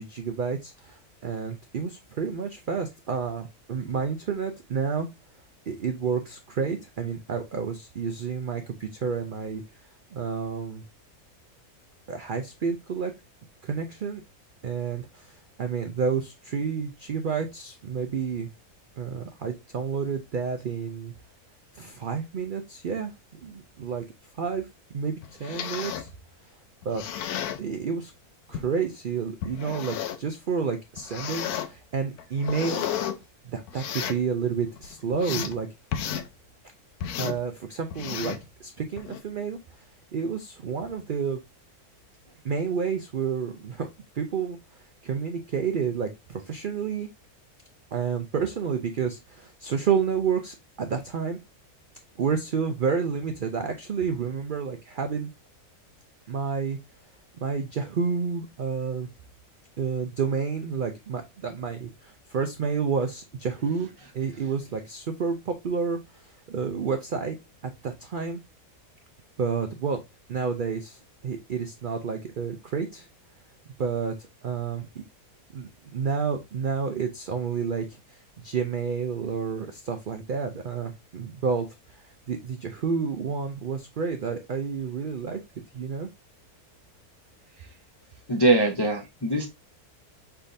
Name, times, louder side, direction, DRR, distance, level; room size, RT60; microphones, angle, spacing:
voice 1, 0.0-5.1 5.7-9.6 10.1-10.8 12.1-13.1 13.6-14.2 14.6-18.5 19.0-21.1 21.7-23.1 23.4-24.0 24.4-24.7 24.9-26.1 26.8-27.0 27.6-28.1 28.5-32.8 33.4-35.7 37.2-39.6 40.1-41.4 42.4-43.9 44.1-44.6 45.0-47.1 47.9-51.4 52.2-55.3 56.3-56.8 57.4-59.1 59.8-63.9 64.1-67.3 67.8-68.4 69.4-70.0 70.3-73.1 73.8-75.0 75.5-81.7 82.3-85.4 85.7-86.1, right 6 dB, 80° right, 0.4 m, -30 dB
sound 1, 25.2-26.1 26.8-27.6 28.5-28.7 29.4-30.3 31.0-31.7 32.2-33.1 33.7-34.2 34.7-35.5 35.9-36.3 37.0-37.4 37.9-38.4 39.0-39.2, left 9 dB, 80° left, 1.1 m, -32 dB
voice 2, 88.3-89.5, right 2 dB, 40° left, 0.3 m, -22 dB
5.6 x 3.4 x 2.6 m
omnidirectional pair, 1.6 m